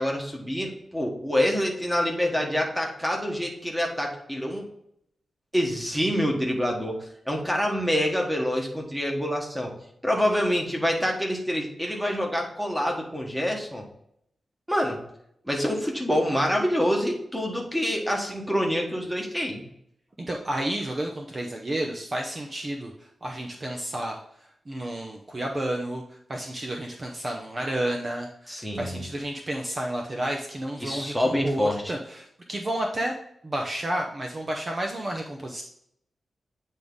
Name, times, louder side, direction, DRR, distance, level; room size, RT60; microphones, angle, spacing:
voice 1, 0.0-4.6 5.5-9.7 10.0-13.8 14.7-15.0 15.4-19.6 28.5-29.1 30.8-31.9, equal, 5° right, 1 dB, 1.4 m, -26 dB
voice 2, 20.3-33.1 33.4-35.6, right 1 dB, 35° right, 1 dB, 0.7 m, -31 dB
8.9 x 3.6 x 3.9 m, 0.74 s
wide cardioid pair, 115°, 0 cm